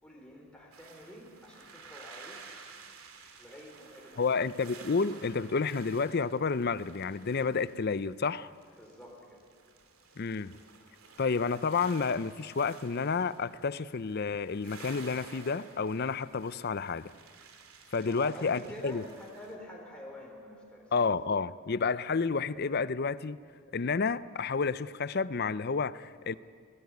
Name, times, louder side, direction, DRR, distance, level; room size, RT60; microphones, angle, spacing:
voice 1, 0.0-2.6 3.4-4.4 8.7-9.4 17.9-20.9, left 1 dB, 5° left, -2 dB, 4.2 m, -48 dB
sound 1, 0.7-19.5, right 5 dB, 75° right, 2.8 m, -53 dB
voice 2, 4.2-8.5 10.2-10.6 11.2-17.1 17.9-19.0 20.9-23.4 23.7-26.4, left 4 dB, 45° left, 16 dB, 0.5 m, -30 dB
21.0 x 19.0 x 9.5 m, 2.1 s
head